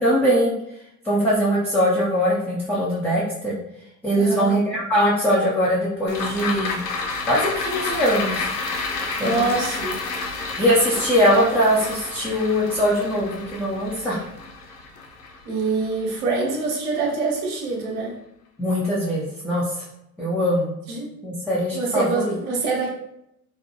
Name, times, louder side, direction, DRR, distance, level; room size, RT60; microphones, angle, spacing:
voice 1, 0.0-0.5 1.0-3.6 4.0-6.8 7.2-8.5 9.2-9.5 10.5-14.2 18.6-19.8 20.2-20.7 21.2-22.3, equal, 5° left, -8 dB, 0.3 m, -21 dB
voice 2, 4.1-4.6 9.2-10.0 15.4-18.2 20.9-21.1 21.7-22.9, right 3 dB, 75° right, -1 dB, 0.8 m, -25 dB
sound 1, 6.1-16.6 17.0-17.1, left 3 dB, 80° left, 0.6 m, -30 dB
2.6 x 2.1 x 2.7 m, 0.79 s
figure-of-eight pair, 70°, 46 cm